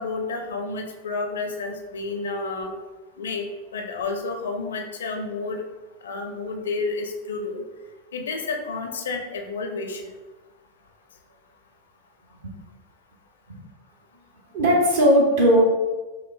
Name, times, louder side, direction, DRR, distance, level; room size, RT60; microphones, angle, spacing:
voice 1, 0.0-2.7 3.2-5.6 6.0-7.6 8.1-10.0, left 3 dB, 65° left, 4 dB, 0.4 m, -30 dB
voice 2, 14.5-15.6, equal, 55° right, -1 dB, 0.9 m, -18 dB
5.2 x 2.0 x 2.3 m, 1.2 s
figure-of-eight pair, 90°, 0 cm